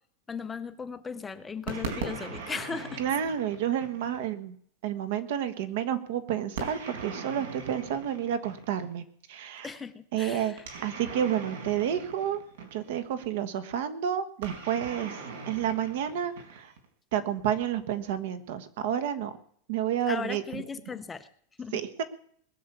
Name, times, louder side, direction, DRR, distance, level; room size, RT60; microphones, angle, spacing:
voice 1, 0.3-3.0 9.6-10.6 20.1-21.3 21.6-21.8, left 5 dB, 10° left, 10 dB, 0.6 m, -37 dB
sound 1, 1.7-4.3 6.6-8.9 10.6-13.0 14.4-16.9, right 4 dB, 80° right, 4.8 m, -40 dB
voice 2, 3.0-4.6 4.8-9.7 10.1-10.5 10.8-12.4 12.7-15.2 15.5-16.7 17.1-19.3 19.7-20.6 21.7-22.0, right 9 dB, 60° right, 12 dB, 1.4 m, -30 dB
20.5 x 6.9 x 8.5 m, 0.63 s
supercardioid pair, 175°, 0 cm